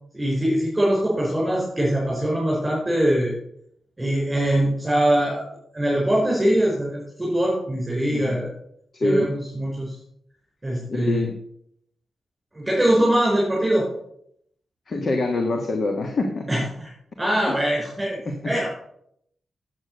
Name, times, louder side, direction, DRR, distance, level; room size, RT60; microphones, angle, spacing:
voice 1, 0.1-3.3 4.0-5.4 5.7-8.5 9.0-9.9 10.6-11.2 12.5-13.9 16.5-16.9 17.2-18.2 18.4-18.7, right 1 dB, 15° right, -5 dB, 5.0 m, -22 dB
voice 2, 8.1-8.5 8.9-9.3 10.9-11.3 14.9-16.5 17.5-17.6 18.2-18.4, left 2 dB, 50° left, 4 dB, 1.6 m, -25 dB
8.9 x 8.7 x 6.6 m, 0.71 s
cardioid pair, 90°, 0 cm